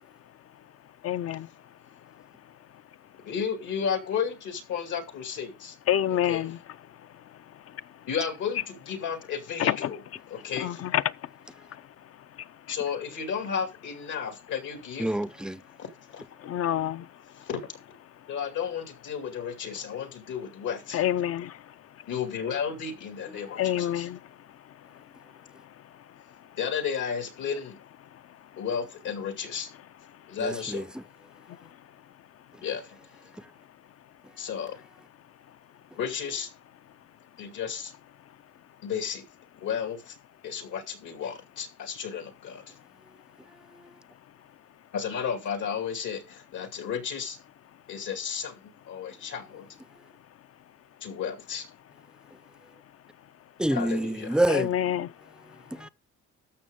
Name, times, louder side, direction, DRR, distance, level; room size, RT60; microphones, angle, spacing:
voice 1, 1.0-1.5 5.9-6.6 9.6-9.9 10.6-11.0 16.5-17.0 20.9-21.5 23.5-24.2 54.5-55.1, left 11 dB, 50° left, 0.5 m, -27 dB
voice 2, 3.2-5.8 6.1-6.6 8.1-10.8 12.7-15.1 15.8-15.9 17.4-17.6 18.3-21.0 22.1-24.1 26.6-27.8 28.6-29.7 30.3-30.9 32.6-33.0 34.4-34.8 35.9-36.5 37.4-37.9 38.8-39.2 39.6-40.2 40.4-42.7 44.9-47.4 47.9-49.7 51.0-51.7 53.7-54.4, left 7 dB, 80° left, 2.4 m, -33 dB
voice 3, 15.0-15.6 23.4-23.5 30.4-31.0 53.6-54.7 55.7-55.9, right 1 dB, 5° right, 0.4 m, -27 dB
13.0 x 6.3 x 3.6 m
cardioid pair, 90°, 30 cm